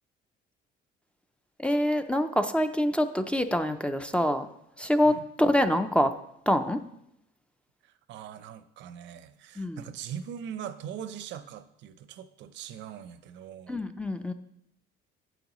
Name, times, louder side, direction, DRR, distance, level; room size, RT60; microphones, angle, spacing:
voice 1, 1.6-4.5 4.8-6.1 6.5-6.8 9.6-9.8 13.7-14.3, left 1 dB, 5° left, 8 dB, 0.4 m, -25 dB
voice 2, 7.8-13.8, right 9 dB, 75° right, 12 dB, 0.7 m, -41 dB
9.2 x 9.1 x 3.0 m, 0.80 s
cardioid pair, 125°, 19 cm